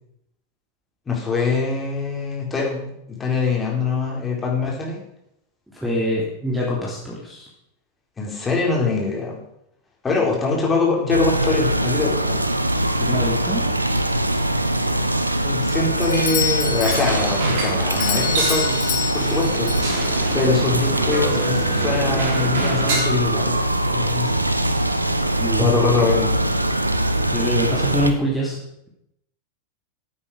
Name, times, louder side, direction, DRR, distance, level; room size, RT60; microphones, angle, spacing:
voice 1, 1.1-5.0 8.2-9.4 10.0-12.4 15.4-19.9 20.3-23.6 23.8-24.3 25.6-26.4, left 4 dB, 15° left, -2 dB, 4.3 m, -23 dB
voice 2, 5.7-7.5 13.0-13.7 25.4-25.7 27.3-28.6, equal, 5° right, -4 dB, 3.2 m, -24 dB
sound 1, 11.1-28.1, right 1 dB, 85° right, 0.9 m, -22 dB
Doorbell, 16.0-20.5, left 10 dB, 35° left, 1.6 m, -29 dB
sound 2, 16.8-23.0, right 2 dB, 50° right, 3.9 m, -28 dB
15.0 x 8.9 x 5.1 m, 0.80 s
figure-of-eight pair, 90°, 0 cm